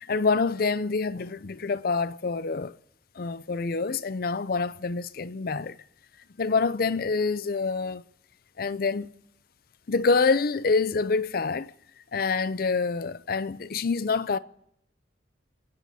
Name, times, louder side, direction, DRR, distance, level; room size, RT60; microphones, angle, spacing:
voice 1, 0.0-2.7 3.2-5.8 6.4-8.0 8.6-9.1 9.9-11.7 12.1-14.4, left 4 dB, 55° left, 0.5 m, -26 dB
28.5 x 16.0 x 2.8 m
head